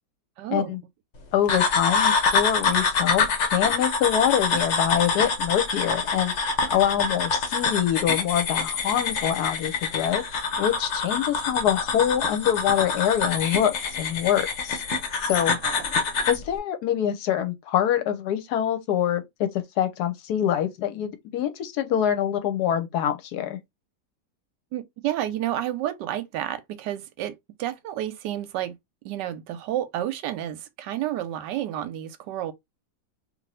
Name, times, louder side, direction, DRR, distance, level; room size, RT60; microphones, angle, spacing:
voice 1, 0.4-0.7 15.6-15.9 24.7-28.7 29.0-32.5, right 12 dB, 85° right, 1.2 m, -30 dB
voice 2, 1.3-3.2 3.5-6.3 6.7-10.2 10.6-14.8 15.3-15.6 16.3-19.5 19.8-23.6, left 10 dB, 75° left, 1.1 m, -25 dB
sound 1, 1.5-16.4, left 4 dB, 55° left, 0.9 m, -25 dB
2.8 x 2.5 x 3.2 m
omnidirectional pair, 1.8 m